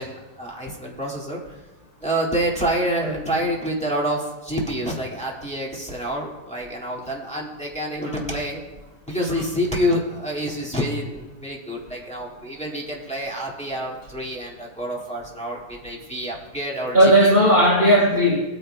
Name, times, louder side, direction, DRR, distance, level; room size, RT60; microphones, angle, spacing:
voice 1, 0.0-1.6 2.0-8.6 9.1-17.3, equal, 5° left, -4 dB, 1.9 m, -27 dB
voice 2, 3.0-3.4 8.0-8.3 9.1-9.2 16.9-18.4, right 1 dB, 35° right, -6 dB, 3.7 m, -17 dB
19.5 x 9.3 x 2.2 m, 1.1 s
omnidirectional pair, 1.8 m